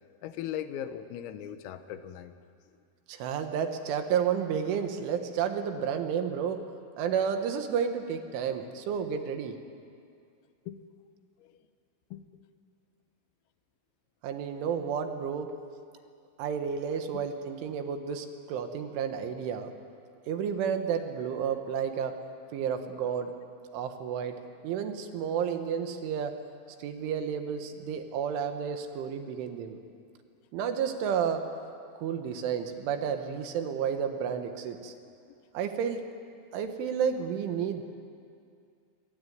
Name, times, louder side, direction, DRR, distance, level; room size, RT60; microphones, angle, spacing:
voice 1, 0.2-2.3 10.7-10.9 11.4-11.5 12.1-12.3 17.1-17.2, left 10 dB, 90° left, 10 dB, 3.9 m, -38 dB
voice 2, 3.1-6.6 7.0-9.6 14.2-15.5 16.4-19.7 20.3-22.2 22.5-23.3 23.7-24.4 24.6-26.4 26.8-29.8 30.5-31.5 32.0-34.9 35.5-36.0 36.5-37.8, right 7 dB, 75° right, 7 dB, 3.8 m, -31 dB
26.0 x 23.0 x 9.5 m, 2.4 s
omnidirectional pair, 5.9 m